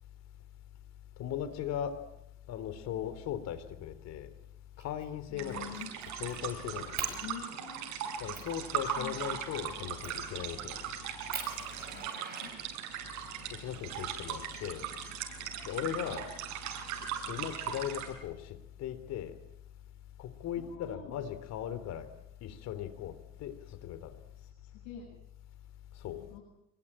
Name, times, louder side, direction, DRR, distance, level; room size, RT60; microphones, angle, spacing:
voice 1, 1.2-2.0 2.5-4.3 4.8-5.7 6.1-7.1 8.2-10.8 13.5-14.9 15.6-16.3 17.3-19.4 20.2-22.1 22.4-23.1 23.4-24.1 26.0-26.2, left 10 dB, 60° left, 12 dB, 3.5 m, -38 dB
Fire, 4.8-5.1 5.5-6.4 7.0-7.2 7.8-7.9 8.3-8.5 10.0-10.3 10.8-10.9 11.3-13.1 14.1-15.1, right 6 dB, 30° right, 7.6 m, -43 dB
voice 2, 5.3-5.9 7.1-7.9 9.0-9.4 11.9-12.5 20.6-21.1 24.4-25.1 26.1-26.4, left 8 dB, 90° left, -1 dB, 7.4 m, -47 dB
sound 1, 5.4-18.1, right 8 dB, 70° right, 6.2 m, -39 dB
26.0 x 22.5 x 8.9 m, 0.83 s
cardioid pair, 135°, 30 cm